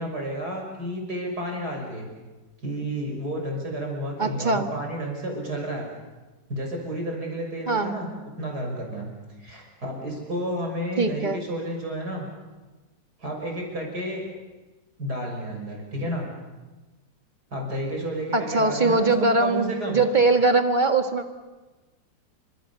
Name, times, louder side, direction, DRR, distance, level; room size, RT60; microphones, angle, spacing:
voice 1, 0.0-2.1 2.6-5.9 6.5-8.1 8.4-9.1 9.4-12.3 13.2-14.2 15.0-16.3 17.5-19.1 19.4-20.0, right 1 dB, 55° right, 1 dB, 6.6 m, -31 dB
voice 2, 4.2-4.7 7.7-7.9 11.0-11.4 18.3-21.3, right 3 dB, 25° right, 6 dB, 1.9 m, -21 dB
29.0 x 26.0 x 7.0 m, 1.2 s
omnidirectional pair, 2.0 m